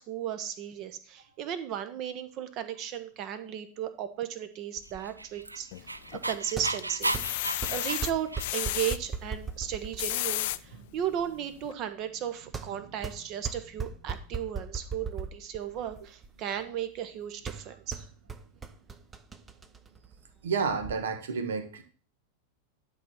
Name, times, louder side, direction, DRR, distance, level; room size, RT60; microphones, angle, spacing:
voice 1, 0.0-7.1 7.7-18.0, right 10 dB, 40° right, 11 dB, 1.1 m, -35 dB
sound 1, 4.8-21.0, right 5 dB, 15° right, 0.8 m, -41 dB
Dog, 5.0-8.8, right 2 dB, 80° right, 0.4 m, -34 dB
sound 2, 5.7-6.3 6.8-9.0 9.8-10.6 11.2-11.3 11.6-11.7, left 16 dB, 50° left, 0.4 m, -32 dB
voice 2, 20.4-21.8, right 5 dB, 60° right, 9 dB, 1.2 m, -30 dB
11.0 x 4.2 x 6.0 m, 0.40 s
figure-of-eight pair, 90°, 0 cm